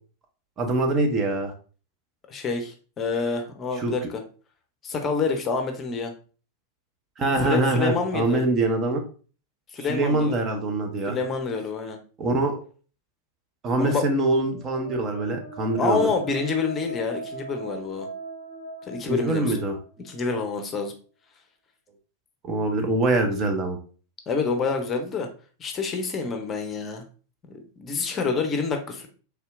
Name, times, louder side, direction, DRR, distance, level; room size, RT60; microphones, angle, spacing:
voice 1, 0.6-1.5 3.8-3.9 7.2-9.0 9.9-11.2 12.2-12.6 13.6-16.1 19.1-19.8 22.4-23.8, right 2 dB, 25° right, 3 dB, 0.7 m, -24 dB
voice 2, 2.3-4.2 4.8-6.1 7.4-8.4 9.7-10.3 11.0-12.0 13.8-14.0 15.8-18.1 18.9-19.6 20.0-20.9 24.3-25.3 25.6-27.0 27.5-29.1, left 4 dB, 25° left, 5 dB, 0.7 m, -27 dB
sound 1, 14.5-20.2, right 1 dB, 85° right, 1.5 m, -40 dB
4.3 x 3.3 x 2.4 m, 0.37 s
figure-of-eight pair, 90°, 0 cm